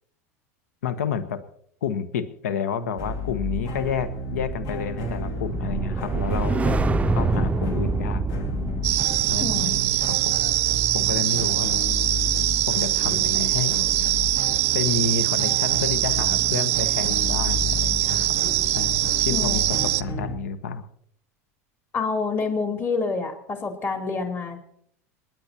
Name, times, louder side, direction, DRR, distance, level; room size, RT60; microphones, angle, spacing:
voice 1, 0.8-1.4 1.8-6.8 7.1-8.2 9.3-10.4 10.9-11.7 12.7-13.7 14.0-14.2 14.7-18.4 18.7-20.9, left 6 dB, 75° left, 12 dB, 1.0 m, -30 dB
sound 1, 3.0-20.4, left 3 dB, 55° left, 2.1 m, -32 dB
sound 2, 3.0-13.4 13.7-14.0, right 5 dB, 15° right, 0.5 m, -29 dB
sound 3, 8.8-20.0, right 19 dB, 65° right, 0.5 m, -23 dB
voice 2, 9.4-9.8 19.3-19.7 21.9-24.6, left 4 dB, 30° left, 3 dB, 3.1 m, -27 dB
27.5 x 10.5 x 2.9 m, 0.68 s
hypercardioid pair, 85°, 8 cm